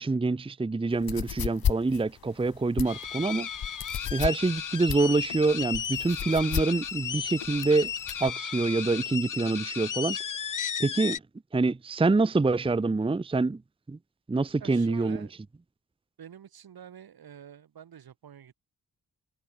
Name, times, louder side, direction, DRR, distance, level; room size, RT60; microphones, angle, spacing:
voice 1, 0.0-3.5 4.1-7.9 8.2-10.2 10.8-11.2 11.5-13.6 13.9-14.0 14.3-15.2, right 3 dB, 15° right, 0.7 m, -26 dB
sound 1, 0.9-8.3, left 9 dB, 80° left, 2.6 m, -33 dB
sound 2, 2.9-11.2, left 8 dB, 60° left, 1.6 m, -34 dB
voice 2, 14.6-15.3 16.2-18.5, right 9 dB, 80° right, 7.9 m, -47 dB
cardioid pair, 70°, 36 cm